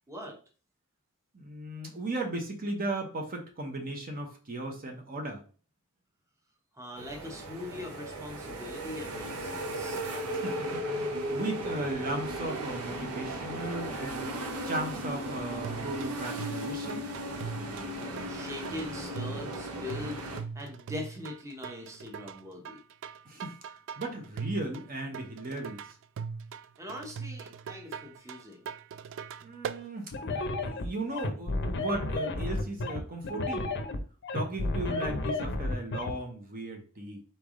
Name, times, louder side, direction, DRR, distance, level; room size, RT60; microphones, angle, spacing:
voice 1, 0.1-0.4 6.8-10.0 17.9-20.2 20.5-22.8 26.8-28.7, left 1 dB, 15° right, 1 dB, 0.8 m, -42 dB
voice 2, 1.3-5.4 10.3-17.1 23.3-23.6 24.0-25.9 29.4-33.7 34.3-37.2, right 2 dB, 40° right, 3 dB, 0.8 m, -36 dB
sound 1, 7.0-20.4, right 1 dB, 85° right, 0.8 m, -36 dB
sound 2, 15.6-29.8, right 6 dB, 60° right, 0.3 m, -41 dB
sound 3, 30.1-36.1, left 2 dB, 55° left, 0.6 m, -32 dB
4.1 x 3.4 x 3.6 m, 0.39 s
head